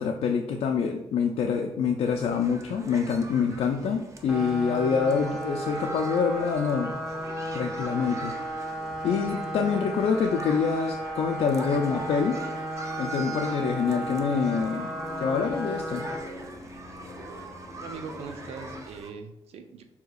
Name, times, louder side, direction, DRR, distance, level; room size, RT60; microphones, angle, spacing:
voice 1, 0.0-6.9 7.5-8.3 9.0-12.4 13.0-16.1, left 6 dB, 75° left, 2 dB, 0.4 m, -26 dB
sound 1, 2.0-19.1, right 3 dB, 30° right, 0.5 m, -43 dB
sound 2, 4.3-16.2, right 1 dB, 5° right, 0.9 m, -34 dB
sound 3, 11.8-18.8, left 3 dB, 10° left, 1.2 m, -46 dB
voice 2, 17.8-19.8, right 5 dB, 85° right, 6 dB, 0.5 m, -41 dB
6.3 x 2.8 x 2.3 m, 0.87 s
cardioid pair, 105°, 10 cm